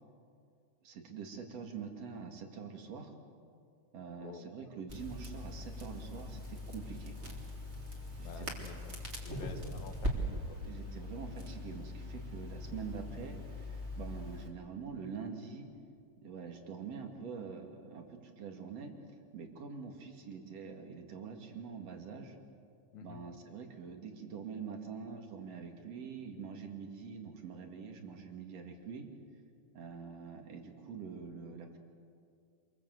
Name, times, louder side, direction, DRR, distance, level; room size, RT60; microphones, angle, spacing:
voice 1, 0.8-3.1 3.9-7.4 8.2-8.6 9.3-9.5 10.6-15.7 16.2-18.9 19.3-22.3 23.0-29.1 29.7-31.8, right 6 dB, 55° right, 3 dB, 3.3 m, -45 dB
voice 2, 4.2-4.7 8.2-9.0 9.3-10.6 22.9-23.2, left 7 dB, 70° left, 6 dB, 2.9 m, -49 dB
Crackle, 4.9-14.5, left 1 dB, 20° right, 2.9 m, -41 dB
27.0 x 22.0 x 8.0 m, 2.3 s
omnidirectional pair, 3.6 m